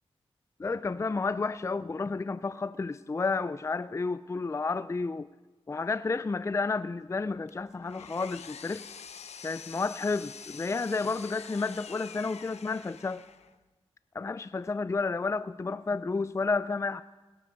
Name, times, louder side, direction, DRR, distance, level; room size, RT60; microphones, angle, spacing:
voice 1, 0.6-5.3 5.7-8.8 9.4-13.2 14.1-17.0, left 4 dB, 25° left, 15 dB, 0.4 m, -31 dB
Power tool, 7.5-13.6, left 6 dB, 75° left, 0.7 m, -46 dB
19.0 x 7.7 x 6.5 m, 1.2 s
cardioid pair, 65°, 11 cm